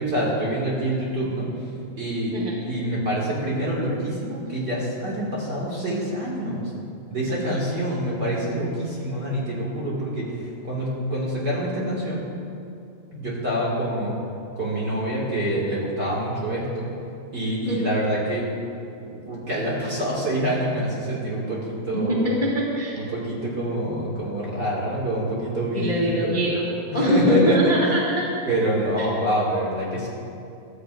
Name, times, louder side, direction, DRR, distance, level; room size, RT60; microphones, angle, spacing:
voice 1, 0.0-1.5 2.0-2.3 2.6-6.6 7.1-12.2 13.1-14.2 14.6-16.9 17.3-18.5 19.0-22.3 22.9-26.4 26.9-27.7 28.5-30.1, right 1 dB, 30° right, -6 dB, 2.1 m, -26 dB
voice 2, 7.3-7.6 17.6-17.9 22.1-23.0 25.7-28.3 29.0-29.1, equal, 30° left, -5 dB, 0.9 m, -23 dB
23.0 x 13.5 x 2.6 m, 2.6 s
omnidirectional pair, 4.9 m